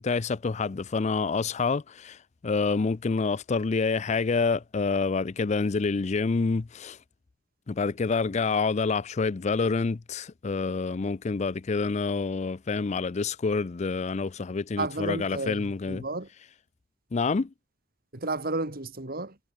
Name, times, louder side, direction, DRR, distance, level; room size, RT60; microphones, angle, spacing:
voice 1, 0.0-2.2 2.4-7.0 7.7-16.0 17.1-17.5, left 4 dB, 35° left, 0.4 m, -27 dB
voice 2, 14.8-16.3 18.1-19.4, right 2 dB, 50° right, 2.7 m, -32 dB
head